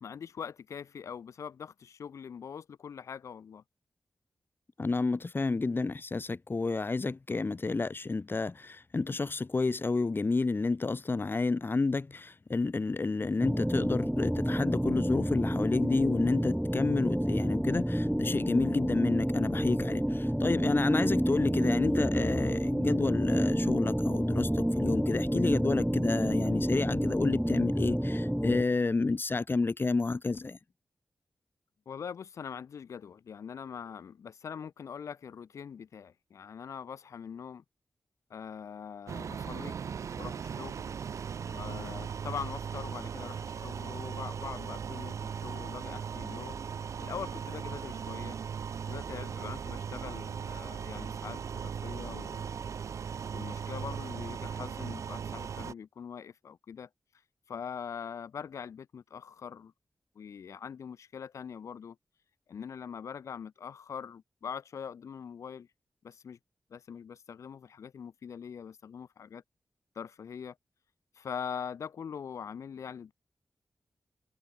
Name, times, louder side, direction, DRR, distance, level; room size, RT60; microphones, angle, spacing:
voice 1, 0.0-3.6 31.9-37.6 38.3-39.8 40.2-40.9 41.5-46.6 47.0-48.4 48.9-52.6 53.3-56.9 57.5-59.7 60.2-62.0 62.5-65.7 66.0-66.4 66.7-69.4 69.9-70.6 71.1-73.1, left 7 dB, 85° left, 1.0 m, -43 dB
voice 2, 4.8-30.6, left 3 dB, 45° left, 2.1 m, -30 dB
sound 1, 13.4-28.6, equal, 5° right, 2.3 m, -29 dB
sound 2, 39.1-55.7, right 7 dB, 85° right, 3.1 m, -38 dB
cardioid pair, 50°, 5 cm